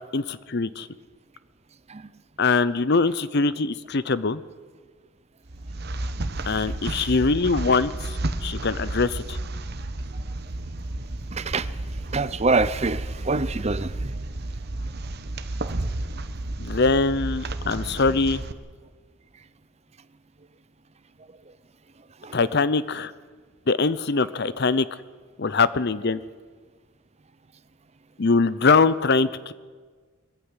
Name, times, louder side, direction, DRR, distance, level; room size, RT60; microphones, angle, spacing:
voice 1, 0.1-0.9 2.4-4.4 6.5-8.2 8.4-9.4 16.6-18.4 22.3-23.1 23.7-24.9 25.4-26.2 28.2-29.5, left 4 dB, 50° left, 16 dB, 0.7 m, -22 dB
sound 1, 5.5-18.5, right 2 dB, 50° right, 1.1 m, -32 dB
voice 2, 11.3-11.7 12.1-13.9 15.6-15.8 22.2-22.4, right 3 dB, 30° right, 15 dB, 0.6 m, -25 dB
21.5 x 15.0 x 9.7 m, 1.5 s
head